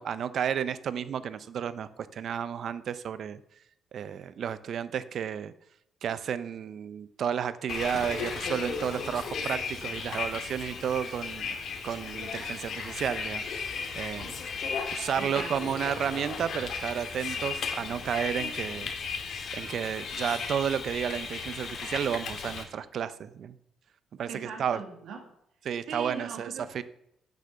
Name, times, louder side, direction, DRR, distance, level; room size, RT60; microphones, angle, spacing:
voice 1, 0.0-3.4 3.9-5.5 6.0-11.5 11.8-14.4 14.9-18.9 19.5-23.5 24.2-24.8 25.6-26.5 26.7-26.8, right 8 dB, 60° right, 15 dB, 0.7 m, -32 dB
Bus, 7.7-22.6, left 5 dB, 65° left, 2.0 m, -35 dB
voice 2, 15.2-15.8 24.3-25.3 25.9-26.8, right 5 dB, 80° right, 3 dB, 2.4 m, -40 dB
10.0 x 6.8 x 6.9 m, 0.77 s
cardioid pair, 90°, 0 cm